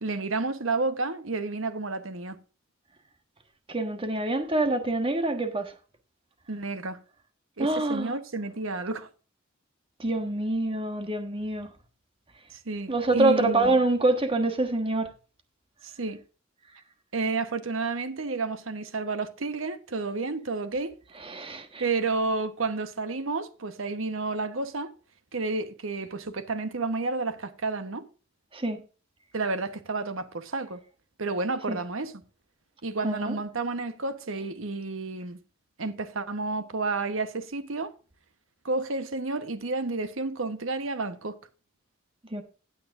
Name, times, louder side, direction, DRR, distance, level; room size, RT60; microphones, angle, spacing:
voice 1, 0.0-2.4 6.5-7.0 7.6-9.1 12.5-13.8 15.8-16.2 17.1-21.0 21.8-24.9 25.3-28.0 29.3-30.8 31.2-32.1 32.8-35.4 35.8-37.9 38.6-41.4, right 3 dB, 80° right, 1.1 m, -31 dB
voice 2, 3.7-5.7 7.6-8.2 10.0-11.7 12.9-15.1 21.2-21.8 28.5-28.8 31.7-31.8 33.0-33.4 42.3-42.4, right 2 dB, 25° right, 1.3 m, -26 dB
16.0 x 8.6 x 2.5 m
head